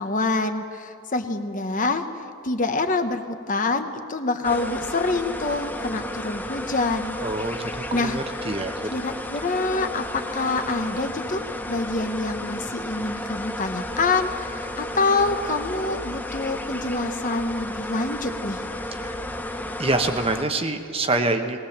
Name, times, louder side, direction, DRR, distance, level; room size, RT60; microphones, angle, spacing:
voice 1, 0.0-2.0 2.4-8.2 8.9-11.4 11.7-18.6, left 3 dB, 35° left, 7 dB, 1.0 m, -26 dB
sound 1, 4.4-20.4, left 1 dB, 10° left, 0.6 m, -33 dB
voice 2, 7.2-8.9 19.0-19.2 19.8-21.6, right 2 dB, 25° right, 6 dB, 1.0 m, -26 dB
19.5 x 19.5 x 7.3 m, 2.5 s
head